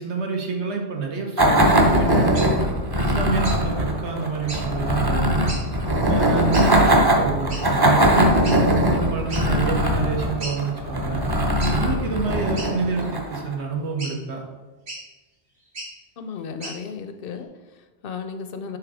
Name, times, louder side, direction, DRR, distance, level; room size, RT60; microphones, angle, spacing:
voice 1, 0.0-2.5 3.0-5.5 6.1-11.2 11.8-14.4, right 4 dB, 70° right, 1 dB, 1.3 m, -28 dB
sound 1, 1.4-13.5, equal, 25° right, 0.6 m, -20 dB
sound 2, 2.3-2.5 3.4-3.6 4.5-4.6 5.5-5.6 6.5-6.7 7.5-7.6 8.4-8.6 9.3-9.4 9.9-10.0 10.4-10.6 11.6-11.8 12.5-13.1 14.0-14.1 14.9-15.0 15.6-15.9 16.6-16.8, right 1 dB, 90° right, 2.5 m, -34 dB
voice 2, 16.2-18.8, left 5 dB, 60° left, 8 dB, 0.6 m, -35 dB
6.6 x 3.6 x 4.8 m, 1.2 s
omnidirectional pair, 1.2 m